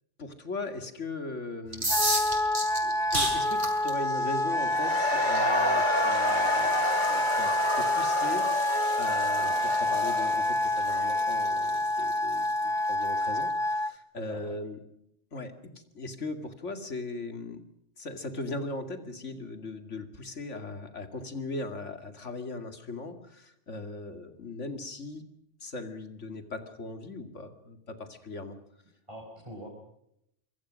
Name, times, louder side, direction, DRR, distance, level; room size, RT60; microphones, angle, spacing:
voice 1, 0.2-2.3 2.8-8.5 9.0-14.8 15.3-17.6 18.0-25.2 25.6-28.6, left 2 dB, 80° left, 7 dB, 2.6 m, -39 dB
sound 1, 1.7-13.4, right 1 dB, 45° right, 5.8 m, -36 dB
Wind instrument woodwind instrument, 1.9-13.9, left 1 dB, 5° left, 0.6 m, -27 dB
Cheering / Crowd, 4.5-11.2, left 2 dB, 40° left, 2.6 m, -31 dB
voice 2, 14.1-14.5 29.1-29.7, equal, 25° right, -2 dB, 5.0 m, -43 dB
25.5 x 23.0 x 6.3 m, 0.78 s
omnidirectional pair, 1.2 m